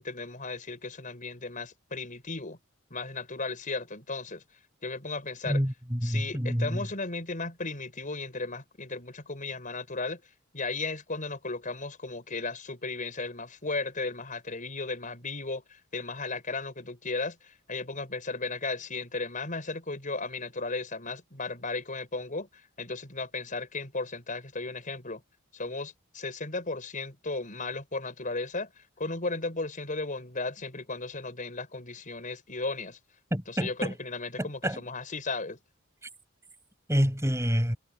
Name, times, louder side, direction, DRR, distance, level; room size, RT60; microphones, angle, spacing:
voice 1, 0.0-2.6 2.9-4.4 4.8-5.6 6.0-10.2 10.5-22.5 22.8-25.2 25.5-33.0 33.5-35.6, left 3 dB, 40° left, 5.4 m, -35 dB
voice 2, 5.4-6.9 33.3-34.0 34.4-34.8 36.9-37.8, equal, 15° right, 7.4 m, -28 dB
head